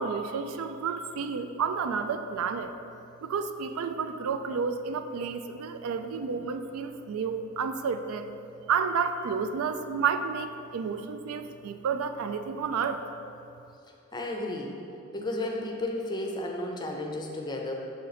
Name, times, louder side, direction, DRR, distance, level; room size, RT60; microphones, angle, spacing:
voice 1, 0.0-2.7 3.2-8.3 8.7-13.0, right 5 dB, 90° right, 9 dB, 0.4 m, -31 dB
voice 2, 14.1-14.9 15.1-17.7, left 1 dB, 20° left, 1 dB, 0.5 m, -33 dB
6.5 x 3.9 x 4.1 m, 2.7 s
head